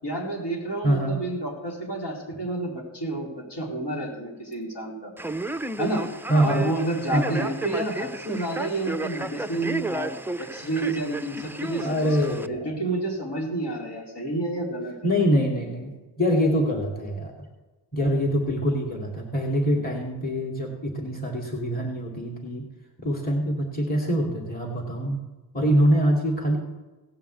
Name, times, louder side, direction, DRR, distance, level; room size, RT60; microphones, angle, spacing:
voice 1, 0.0-5.1 5.8-6.1 6.4-14.9, right 2 dB, 70° left, -3 dB, 4.5 m, -30 dB
voice 2, 0.8-1.2 6.3-6.6 7.1-7.4 11.8-12.7 15.0-17.3 17.9-22.7 23.0-25.2 25.5-26.6, equal, 20° left, -1 dB, 2.6 m, -24 dB
Male speech man speaking, 5.2-12.5, right 2 dB, 5° right, 0.3 m, -33 dB
17.5 x 5.8 x 8.5 m, 1.2 s
wide cardioid pair, 105°, 43 cm